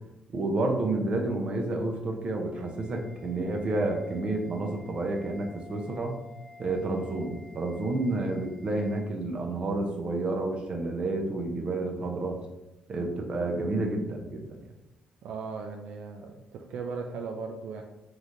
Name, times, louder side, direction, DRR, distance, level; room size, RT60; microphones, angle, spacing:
voice 1, 0.3-6.2 6.6-12.4 12.9-14.6, right 2 dB, 45° right, 2 dB, 0.8 m, -30 dB
sound 1, 2.5-9.0, left 3 dB, 85° left, 1.1 m, -52 dB
voice 2, 15.2-17.8, right 4 dB, 80° right, 2 dB, 0.4 m, -37 dB
4.0 x 3.2 x 3.8 m, 0.95 s
cardioid pair, 95°, 2 cm